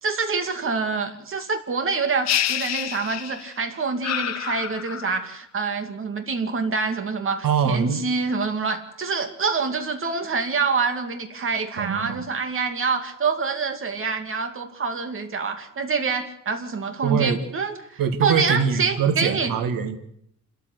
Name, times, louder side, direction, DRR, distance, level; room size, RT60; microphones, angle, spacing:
voice 1, 0.0-19.5, right 4 dB, 40° right, 7 dB, 2.6 m, -26 dB
sound 1, 2.3-3.6 4.0-5.3, left 11 dB, 55° left, 0.9 m, -28 dB
voice 2, 7.4-8.0 11.8-12.2 17.0-17.4 18.0-20.0, right 7 dB, 80° right, 7 dB, 1.9 m, -23 dB
27.5 x 14.0 x 8.0 m, 0.72 s
cardioid pair, 155°, 33 cm